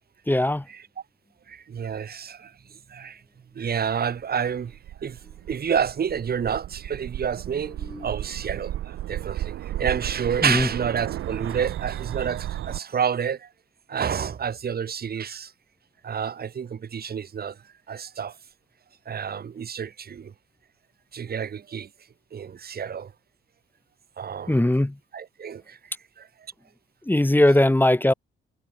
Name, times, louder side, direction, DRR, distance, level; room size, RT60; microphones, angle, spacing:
voice 1, 0.3-0.6 7.9-8.1 10.4-10.7 24.5-25.0 27.0-28.1, left 1 dB, 10° left, 1.5 m, -20 dB
voice 2, 1.5-2.5 2.9-3.2 3.5-5.2 5.5-13.5 13.9-15.5 16.0-17.6 17.9-18.4 19.1-20.3 21.1-21.9 22.3-23.1 24.2-24.7 25.1-26.3, right 7 dB, 45° right, 2.0 m, -29 dB
sound 1, 4.6-12.8, right 13 dB, 70° right, 1.3 m, -34 dB
supercardioid pair, 65°, 21 cm